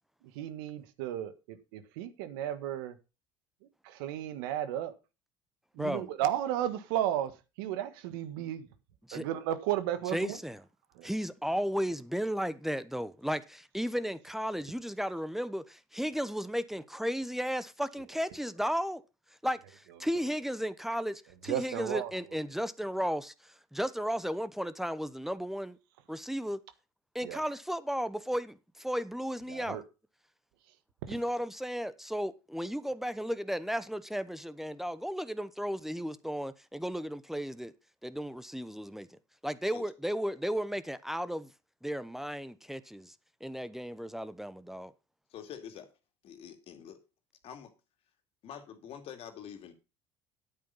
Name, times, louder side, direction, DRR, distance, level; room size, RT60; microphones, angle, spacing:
voice 1, 0.3-3.0 3.8-4.9 5.7-7.3 7.6-8.7 9.1-10.4 10.9-11.1 21.5-22.1 27.2-27.4 29.5-29.8 31.1-31.2, right 12 dB, 85° right, 1.4 m, -34 dB
voice 2, 10.1-10.6 11.0-19.0 19.4-23.3 23.7-25.8 26.1-26.6 27.1-29.8 31.1-37.7 38.0-39.1 39.4-41.5 41.8-43.1 43.4-44.9, equal, 5° right, 1.0 m, -34 dB
voice 3, 45.3-45.9 46.2-47.0 47.4-47.7 48.4-49.7, left 8 dB, 55° left, 2.5 m, -46 dB
9.6 x 8.7 x 5.4 m
supercardioid pair, 85°, 12 cm